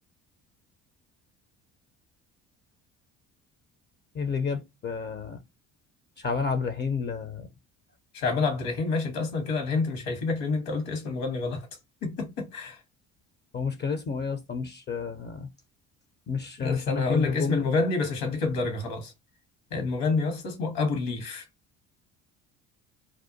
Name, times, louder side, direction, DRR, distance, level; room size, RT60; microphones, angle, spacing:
voice 1, 4.2-5.4 6.2-7.5 13.5-15.5 16.3-17.8, left 5 dB, 30° left, 0.5 m, -30 dB
voice 2, 8.1-11.7 12.0-12.8 16.6-19.1 19.7-21.4, left 4 dB, 70° left, 1.2 m, -28 dB
2.5 x 2.2 x 2.5 m
hypercardioid pair, 65°, 38 cm